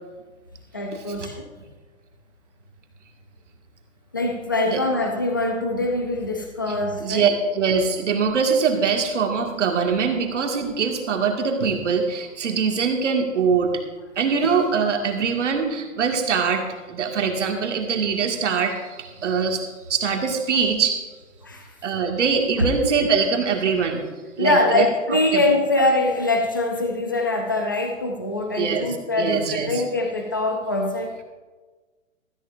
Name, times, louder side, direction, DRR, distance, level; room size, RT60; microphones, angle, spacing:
voice 1, 0.7-1.4 4.1-7.3 21.4-21.7 24.4-31.2, left 2 dB, 15° left, 3 dB, 0.4 m, -23 dB
voice 2, 7.0-13.7 14.2-19.6 19.9-21.0 21.8-24.0 24.4-24.9 25.1-25.4 28.5-28.9 29.2-29.7, right 5 dB, 60° right, 2 dB, 2.1 m, -23 dB
16.5 x 13.5 x 2.6 m, 1.3 s
hypercardioid pair, 160°, 40 cm